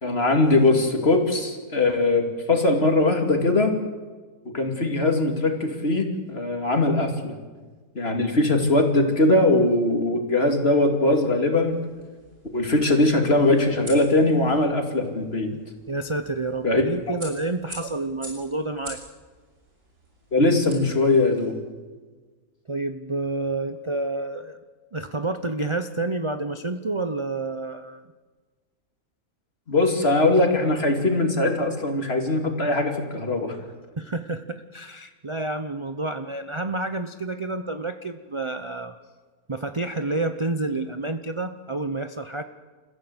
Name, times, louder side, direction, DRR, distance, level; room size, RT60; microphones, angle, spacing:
voice 1, 0.0-3.7 4.5-7.3 7.9-11.8 12.5-15.5 16.6-16.8 20.3-21.6 29.7-33.6, left 2 dB, 40° left, 3 dB, 2.9 m, -21 dB
sound 1, 11.6-21.5, right 1 dB, 85° right, 6.5 m, -46 dB
voice 2, 15.9-19.0 22.7-24.6 24.9-28.0 34.0-38.9 39.5-42.4, right 2 dB, 25° right, 8 dB, 0.7 m, -29 dB
29.0 x 15.0 x 8.0 m, 1.4 s
omnidirectional pair, 1.6 m